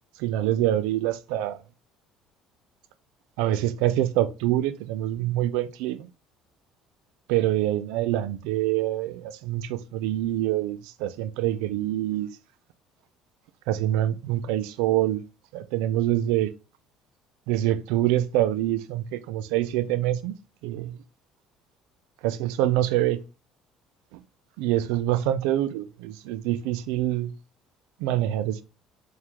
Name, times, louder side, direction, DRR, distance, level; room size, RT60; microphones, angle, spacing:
voice 1, 0.2-1.6 3.4-6.1 7.3-12.3 13.7-15.2 15.5-16.5 17.5-20.4 20.6-21.0 22.2-23.2 24.6-27.3 28.0-28.6, right 13 dB, 85° right, 0.4 m, -25 dB
4.7 x 2.4 x 3.3 m
cardioid pair, 120°, 0 cm